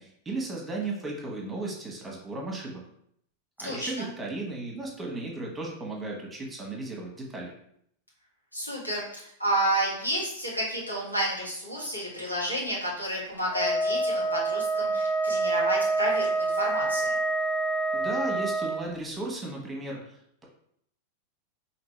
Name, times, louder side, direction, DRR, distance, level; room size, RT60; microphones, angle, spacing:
voice 1, 0.0-2.8 3.6-7.5 17.9-20.4, right 2 dB, 15° right, -1 dB, 1.3 m, -35 dB
voice 2, 3.6-4.1 8.5-17.1, right 1 dB, 90° left, -6 dB, 1.6 m, -30 dB
Wind instrument woodwind instrument, 13.5-18.8, right 2 dB, 20° left, 0.5 m, -27 dB
5.0 x 3.0 x 3.2 m, 0.69 s
figure-of-eight pair, 90°, 0 cm